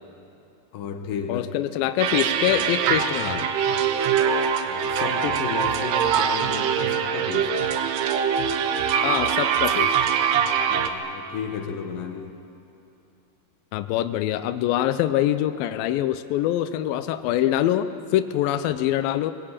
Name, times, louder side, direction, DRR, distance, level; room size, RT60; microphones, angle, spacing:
voice 1, 0.7-1.6 4.6-7.6 10.7-12.4, left 6 dB, 65° left, 6 dB, 2.6 m, -33 dB
voice 2, 1.3-3.5 9.0-10.0 13.7-19.3, left 12 dB, 90° left, 11 dB, 2.0 m, -24 dB
sound 1, 2.0-10.9, right 8 dB, 75° right, 2.9 m, -23 dB
22.5 x 20.5 x 8.8 m, 2.8 s
omnidirectional pair, 5.0 m